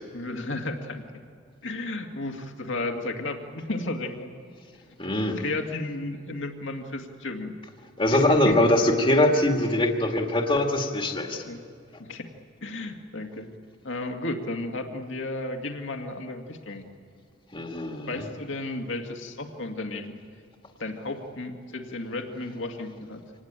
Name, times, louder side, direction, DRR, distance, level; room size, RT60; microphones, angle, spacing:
voice 1, 0.1-1.0 1.6-4.3 5.3-7.5 8.1-8.6 11.4-11.6 12.0-12.3 12.6-13.5 13.8-16.9 18.1-20.1 20.8-23.2, left 2 dB, 65° left, 4 dB, 2.1 m, -33 dB
voice 2, 5.0-5.4 8.0-11.4 17.5-18.1, left 1 dB, 25° left, 2 dB, 2.0 m, -22 dB
26.0 x 19.5 x 9.0 m, 2.4 s
head